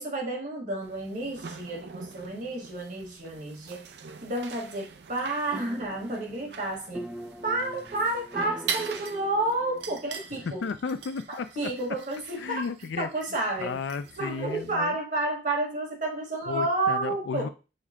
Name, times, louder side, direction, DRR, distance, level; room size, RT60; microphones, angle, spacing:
voice 1, 0.0-3.9 4.2-7.1 7.4-10.6 11.6-12.6 13.0-13.8 14.2-17.5, right 2 dB, 45° right, 0 dB, 1.3 m, -30 dB
sound 1, 0.8-14.8, right 6 dB, 65° right, 0.4 m, -42 dB
sound 2, 5.4-10.6, right 1 dB, 5° right, 0.4 m, -43 dB
voice 2, 10.4-11.7 12.4-13.1 13.6-15.0 16.5-17.5, left 5 dB, 85° left, 11 dB, 0.4 m, -33 dB
6.4 x 2.2 x 3.5 m, 0.31 s
head